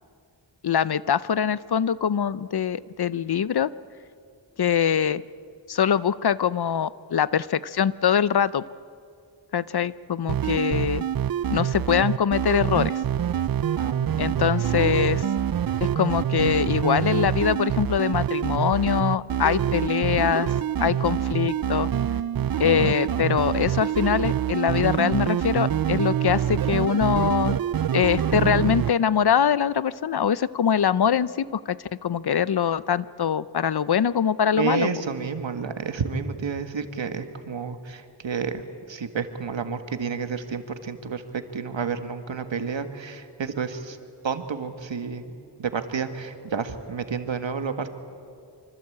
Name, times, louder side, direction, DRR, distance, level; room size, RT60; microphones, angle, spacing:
voice 1, 0.6-3.7 4.6-5.2 5.7-8.6 9.5-11.0 11.5-13.0 14.2-15.2 15.8-20.5 20.8-21.9 22.6-27.6 27.9-34.9, left 8 dB, 60° left, 18 dB, 0.7 m, -23 dB
sound 1, 10.3-28.9, right 10 dB, 55° right, 0.5 m, -25 dB
voice 2, 13.7-14.5 34.6-38.6 38.9-41.2 41.5-44.0 44.2-45.3 45.6-47.9, right 6 dB, 85° right, 8 dB, 1.7 m, -30 dB
25.5 x 25.0 x 8.6 m, 2.4 s
wide cardioid pair, 80°, 44 cm